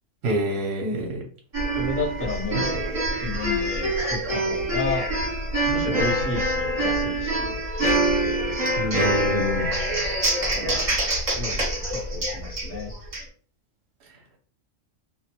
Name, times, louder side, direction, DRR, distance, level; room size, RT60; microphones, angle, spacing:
voice 1, 0.2-1.2 8.8-9.7, right 1 dB, 60° right, 1 dB, 0.9 m, -27 dB
sound 1, 1.5-13.2, right 1 dB, 30° right, 1.1 m, -25 dB
voice 2, 1.8-2.9 3.2-5.0 5.7-7.6 10.4-10.8 11.3-12.9, left 3 dB, 15° left, -3 dB, 0.6 m, -32 dB
2.7 x 2.1 x 2.8 m, 0.42 s
omnidirectional pair, 1.3 m